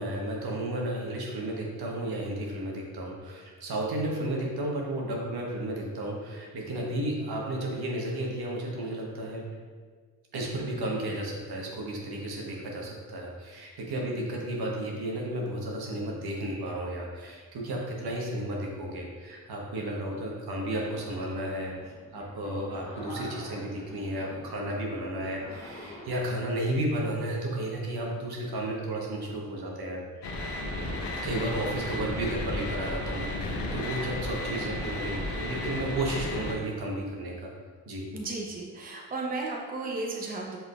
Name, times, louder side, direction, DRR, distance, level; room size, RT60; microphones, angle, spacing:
voice 1, 0.0-9.5 10.3-30.4 31.2-37.5 37.9-38.1, right 1 dB, 60° right, -2 dB, 1.2 m, -33 dB
sound 1, 20.7-26.5, equal, 15° left, 1.0 m, -46 dB
sound 2, 30.2-36.5, left 1 dB, 70° left, 0.9 m, -33 dB
voice 2, 38.1-40.6, right 3 dB, 20° right, -1 dB, 0.7 m, -34 dB
5.5 x 3.7 x 2.4 m, 1.5 s
supercardioid pair, 50°, 43 cm